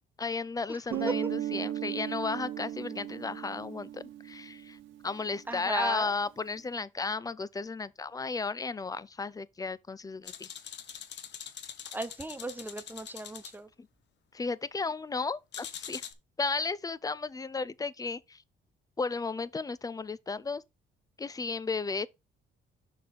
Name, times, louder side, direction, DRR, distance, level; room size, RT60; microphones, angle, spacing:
voice 1, 0.2-4.8 5.0-10.5 13.8-13.9 14.3-16.0 16.4-18.4 19.0-20.6 21.2-22.1, left 4 dB, 20° left, 0.5 m, -34 dB
Guitar, 0.9-5.5, right 12 dB, 75° right, 1.4 m, -37 dB
voice 2, 5.5-6.1 11.9-13.7, right 2 dB, 10° right, 0.9 m, -36 dB
sound 1, 10.3-13.6 15.5-16.1, left 9 dB, 60° left, 1.0 m, -43 dB
6.1 x 4.2 x 5.3 m
cardioid pair, 90°, 20 cm